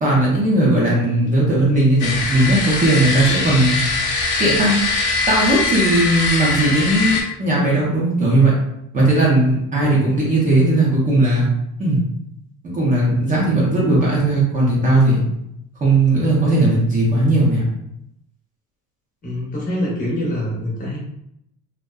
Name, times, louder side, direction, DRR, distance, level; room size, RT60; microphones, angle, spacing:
voice 1, 0.0-3.8 4.4-4.8 5.3-8.5 8.9-11.5 11.8-12.0 12.6-15.2 15.8-17.7, right 2 dB, 25° right, -5 dB, 0.6 m, -17 dB
sound 1, 2.0-7.2, left 3 dB, 85° left, 0.6 m, -21 dB
voice 2, 9.8-10.2 19.2-21.0, left 1 dB, 25° left, -5 dB, 0.7 m, -25 dB
2.6 x 2.1 x 2.2 m, 0.78 s
cardioid pair, 150°, 33 cm